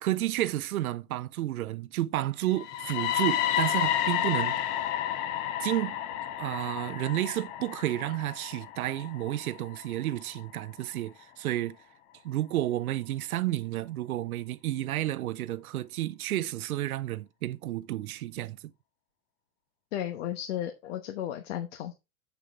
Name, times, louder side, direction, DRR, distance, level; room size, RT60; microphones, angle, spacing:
voice 1, 0.0-4.6 5.6-6.0 6.4-11.8 12.2-18.7, right 14 dB, 80° right, 0.8 m, -31 dB
sound 1, 2.5-10.4, left 11 dB, 20° left, 0.4 m, -31 dB
voice 2, 19.9-21.9, left 11 dB, 55° left, 1.2 m, -34 dB
7.5 x 6.8 x 3.7 m
supercardioid pair, 150°, 42 cm